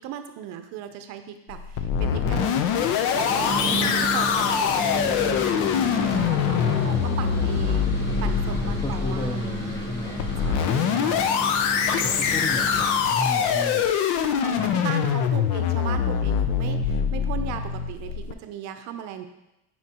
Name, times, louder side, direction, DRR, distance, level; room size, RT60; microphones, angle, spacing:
voice 1, 0.0-2.8 3.1-9.6 10.4-11.3 14.4-19.3, right 9 dB, 60° right, 8 dB, 0.6 m, -37 dB
sound 1, 1.5-18.3, left 7 dB, 70° left, 0.7 m, -24 dB
sound 2, 3.1-13.2, right 1 dB, 35° left, 1.6 m, -32 dB
voice 2, 8.5-10.5 10.8-11.3 12.0-13.9 14.5-14.9, left 2 dB, 10° left, 4 dB, 0.6 m, -33 dB
9.6 x 4.4 x 2.9 m, 0.91 s
cardioid pair, 145°, 31 cm